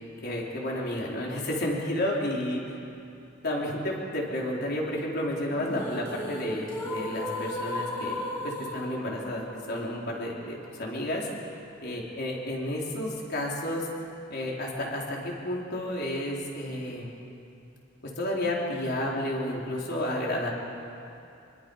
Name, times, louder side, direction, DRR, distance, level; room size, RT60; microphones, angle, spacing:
voice 1, 0.2-2.8 3.4-11.3 11.8-13.9 14.3-17.1 18.0-20.5, left 1 dB, 55° left, -3 dB, 4.4 m, -31 dB
sound 1, 5.5-11.5, left 1 dB, 20° left, 4.6 m, -36 dB
26.0 x 24.0 x 5.7 m, 2.7 s
head